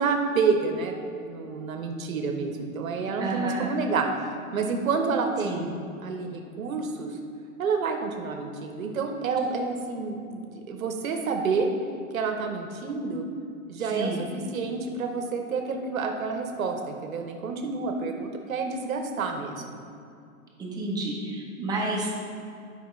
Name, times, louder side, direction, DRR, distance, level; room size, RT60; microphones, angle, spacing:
voice 1, 0.0-4.1 4.5-5.8 6.0-7.1 7.6-11.7 12.1-13.3 13.7-19.8, right 4 dB, 70° right, 4 dB, 0.9 m, -29 dB
voice 2, 3.2-3.7 5.4-5.7 13.8-14.2 20.6-22.1, right 2 dB, 10° right, -3 dB, 0.8 m, -30 dB
7.9 x 5.2 x 3.2 m, 2.4 s
hypercardioid pair, 130°, 43 cm